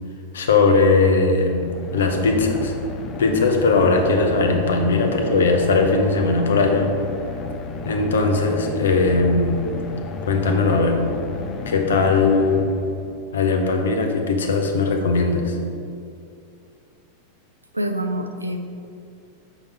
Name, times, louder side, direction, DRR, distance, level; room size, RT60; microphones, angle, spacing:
voice 1, 0.3-1.7 1.9-2.7 3.2-6.9 7.8-9.6 10.3-11.0 11.6-12.7 13.3-15.6, left 3 dB, 65° left, 4 dB, 0.7 m, -19 dB
sound 1, 1.4-13.3, left 3 dB, 30° left, 0.4 m, -32 dB
voice 2, 17.7-18.6, right 1 dB, 85° right, 6 dB, 0.4 m, -27 dB
6.5 x 4.0 x 4.6 m, 2.5 s
figure-of-eight pair, 90°, 0 cm